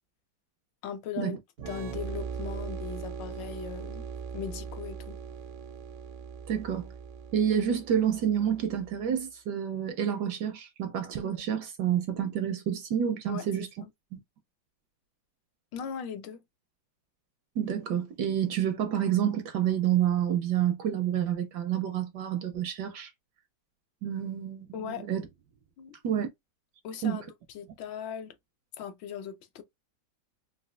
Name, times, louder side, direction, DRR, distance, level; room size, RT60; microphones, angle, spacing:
voice 1, 0.8-1.4 1.7-4.1 4.3-5.2 13.3-13.4 13.8-13.9 15.7-16.4 24.7-25.1 25.8-25.9 26.8-27.2 27.5-28.3 28.8-29.6, left 8 dB, 75° left, 1.2 m, -38 dB
sound 1, 1.6-9.1, right 6 dB, 90° right, 1.4 m, -40 dB
voice 2, 6.5-6.9 7.3-13.7 14.1-14.2 17.6-23.1 24.0-25.2 26.0-26.3 27.0-27.2, right 9 dB, 75° right, 1.0 m, -28 dB
4.1 x 2.2 x 2.3 m
omnidirectional pair, 2.1 m